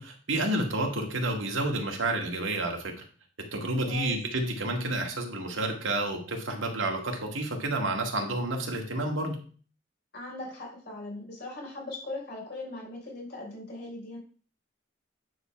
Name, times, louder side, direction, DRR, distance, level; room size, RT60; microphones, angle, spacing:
voice 1, 0.0-2.9 3.5-9.4, right 2 dB, 85° right, 2 dB, 1.9 m, -30 dB
voice 2, 3.9-4.2 10.1-14.2, left 2 dB, 55° left, -2 dB, 3.5 m, -39 dB
9.6 x 4.0 x 5.7 m, 0.42 s
head